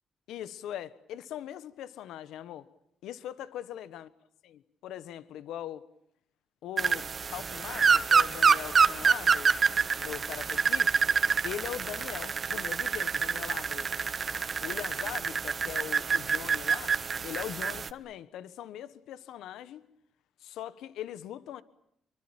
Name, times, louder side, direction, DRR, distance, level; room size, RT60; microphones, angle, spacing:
voice 1, 0.3-2.7 3.0-4.1 4.4-5.9 6.6-9.5 10.0-11.0 11.4-14.0 14.6-17.0 17.2-19.9 20.4-21.6, left 11 dB, 85° left, 1.3 m, -41 dB
sound 1, 6.8-17.9, right 5 dB, 40° right, 1.5 m, -27 dB
27.0 x 24.0 x 8.8 m
cardioid pair, 90°, 0 cm